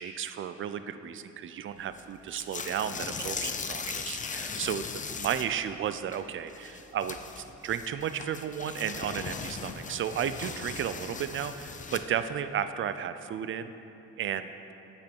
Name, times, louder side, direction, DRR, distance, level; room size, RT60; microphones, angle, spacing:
voice 1, 0.0-13.7 14.2-14.5, right 9 dB, 45° right, 11 dB, 0.4 m, -33 dB
sound 1, 2.0-2.1 2.3-5.6 5.9-6.2 6.5-12.2, left 5 dB, 25° left, 0.4 m, -38 dB
8.3 x 5.5 x 4.4 m, 3.0 s
cardioid pair, 90°, 30 cm